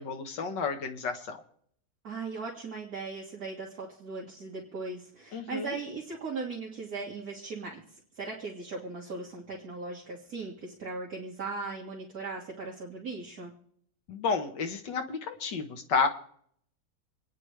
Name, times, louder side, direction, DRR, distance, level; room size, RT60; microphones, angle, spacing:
voice 1, 0.0-1.4 5.3-5.7 14.1-16.1, left 5 dB, 75° left, 5 dB, 2.0 m, -31 dB
voice 2, 2.0-13.5, right 4 dB, 55° right, -4 dB, 2.5 m, -38 dB
27.0 x 9.7 x 3.3 m, 0.64 s
omnidirectional pair, 2.0 m